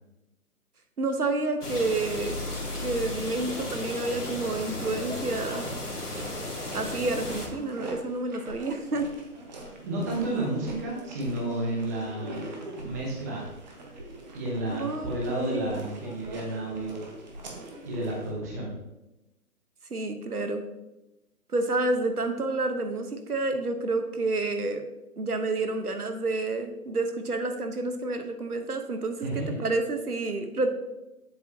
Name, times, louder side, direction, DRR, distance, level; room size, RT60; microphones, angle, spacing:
voice 1, 1.0-2.4 2.8-5.7 6.7-9.1 14.7-15.8 19.9-20.6 21.5-24.9 25.2-30.7, right 2 dB, 75° right, 7 dB, 1.2 m, -29 dB
sound 1, 1.6-7.5, left 1 dB, 90° left, 2.1 m, -34 dB
sound 2, 5.5-18.3, right 2 dB, 30° right, 1.2 m, -44 dB
voice 2, 9.8-12.4 12.8-13.5 14.3-17.0 17.9-18.7 29.2-29.6, right 1 dB, 10° right, -3 dB, 0.8 m, -31 dB
7.9 x 7.6 x 2.8 m, 0.96 s
figure-of-eight pair, 140°, 45 cm